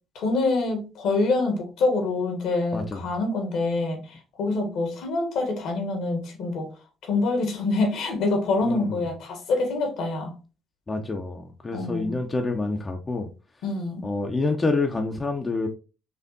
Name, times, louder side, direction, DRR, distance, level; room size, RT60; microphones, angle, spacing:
voice 1, 0.1-6.7 7.0-10.4 11.7-12.2 13.6-14.1, left 3 dB, 70° left, 1.2 m, -26 dB
voice 2, 2.7-3.0 8.6-9.0 10.9-13.3 14.0-15.7, left 3 dB, 30° left, 0.6 m, -27 dB
4.4 x 2.6 x 2.5 m
hypercardioid pair, 60°, 0 cm